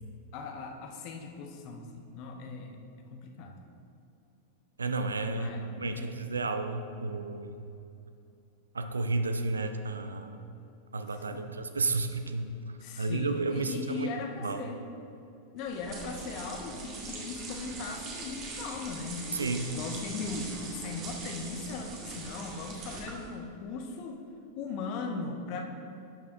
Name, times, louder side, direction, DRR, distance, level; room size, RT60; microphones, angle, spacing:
voice 1, 0.3-2.8 3.1-3.6 5.3-5.7 5.9-6.2 11.1-11.5 12.8-14.8 15.5-24.2 24.6-25.6, left 4 dB, 45° left, 4 dB, 0.8 m, -39 dB
voice 2, 4.8-5.5 5.8-7.6 8.7-10.4 10.9-12.5 13.0-14.1 14.4-14.7 19.3-19.7, right 3 dB, 75° right, 8 dB, 0.4 m, -32 dB
sound 1, 15.6-23.4, right 3 dB, 35° right, 1.3 m, -42 dB
12.0 x 5.6 x 2.5 m, 2.6 s
figure-of-eight pair, 90°, 0 cm